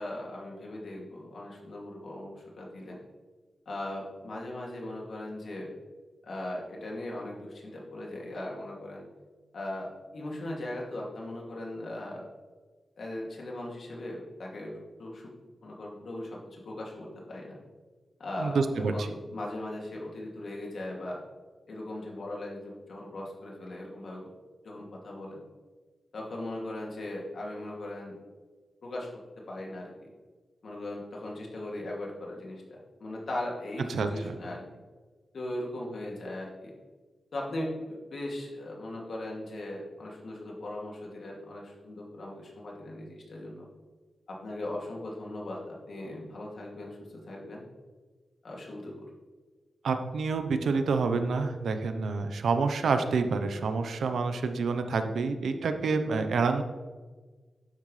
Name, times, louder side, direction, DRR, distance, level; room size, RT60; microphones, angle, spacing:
voice 1, 0.0-3.0 3.7-5.7 6.2-9.0 9.5-12.3 13.0-15.3 15.6-17.6 18.2-21.2 21.7-24.3 24.6-25.4 26.1-28.1 28.8-30.1 30.6-34.6 35.3-36.7 37.3-43.7 44.3-47.6 48.4-49.1, left 1 dB, 60° left, -2 dB, 2.7 m, -39 dB
voice 2, 18.4-18.9 33.9-34.3 49.8-56.6, right 4 dB, 90° right, 8 dB, 0.9 m, -28 dB
11.5 x 9.3 x 3.4 m, 1.3 s
wide cardioid pair, 135°, 0 cm